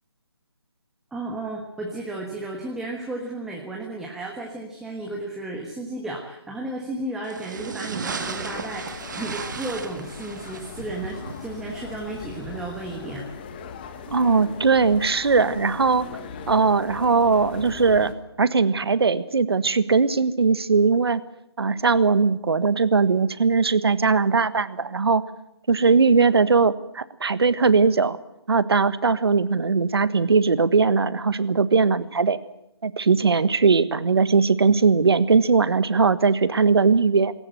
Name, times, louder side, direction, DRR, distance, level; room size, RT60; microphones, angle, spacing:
voice 1, 1.1-13.3, right 2 dB, 5° right, -1 dB, 1.3 m, -33 dB
sound 1, 7.2-13.2, right 5 dB, 45° right, 1.6 m, -36 dB
sound 2, 8.1-18.1, left 6 dB, 20° left, 1.4 m, -39 dB
voice 2, 14.1-16.1 16.5-18.1 18.4-21.2 21.6-25.2 25.7-28.2 28.5-32.4 32.8-37.3, right 4 dB, 65° right, 15 dB, 1.4 m, -20 dB
19.5 x 18.0 x 9.2 m, 0.86 s
figure-of-eight pair, 165°, 14 cm